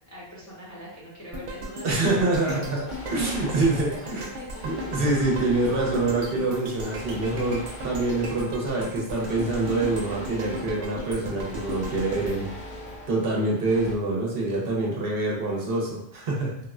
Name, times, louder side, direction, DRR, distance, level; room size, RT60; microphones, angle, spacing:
voice 1, 0.1-2.1 2.4-2.7 3.0-3.5 3.9-4.5, equal, 20° left, -7 dB, 0.5 m, -42 dB
sound 1, 1.3-13.5 13.9-14.0, equal, 90° right, 0.9 m, -36 dB
voice 2, 1.8-2.8 3.1-4.3 4.6-12.5 13.1-16.5, right 2 dB, 65° right, -2 dB, 0.8 m, -26 dB
sound 2, 2.9-14.0, equal, 75° left, 0.9 m, -41 dB
3.4 x 2.0 x 2.4 m, 0.74 s
omnidirectional pair, 1.1 m